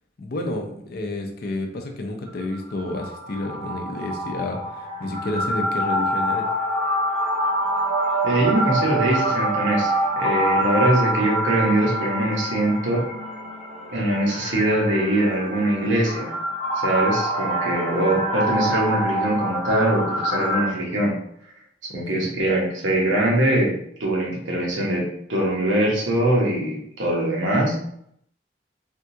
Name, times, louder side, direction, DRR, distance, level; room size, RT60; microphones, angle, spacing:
voice 1, 0.2-6.5 21.9-22.3, left 2 dB, 55° left, 3 dB, 0.5 m, -30 dB
sound 1, 2.3-20.6, right 1 dB, 35° left, 0.9 m, -26 dB
voice 2, 8.2-13.1 13.9-16.3 16.8-21.2 21.9-23.7 24.0-27.8, right 1 dB, 80° right, -2 dB, 1.0 m, -22 dB
3.5 x 2.3 x 2.7 m, 0.69 s
head